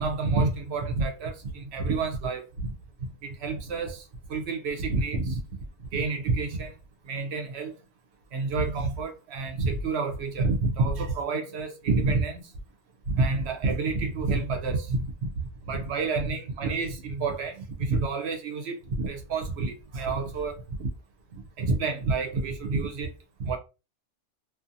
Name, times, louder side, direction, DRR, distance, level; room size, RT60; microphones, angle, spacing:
voice 1, 0.0-2.7 3.0-4.0 4.3-5.4 5.9-6.7 7.1-7.7 8.3-12.4 13.1-15.3 15.7-20.9 21.6-23.1 23.4-23.6, right 3 dB, 65° right, 0.8 m, -28 dB
2.6 x 2.4 x 2.5 m
omnidirectional pair, 1.2 m